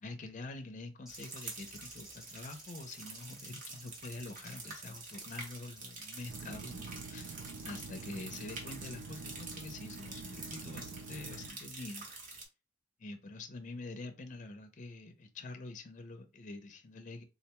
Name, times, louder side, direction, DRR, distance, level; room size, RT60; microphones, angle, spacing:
voice 1, 0.0-12.1 13.0-17.2, left 2 dB, 40° left, 0.5 m, -46 dB
sound 1, 1.1-6.6, equal, 5° right, 0.6 m, -56 dB
sound 2, 1.1-12.5, right 3 dB, 45° right, 0.9 m, -47 dB
sound 3, 6.3-11.5, right 4 dB, 70° right, 0.3 m, -47 dB
3.7 x 2.2 x 2.8 m
head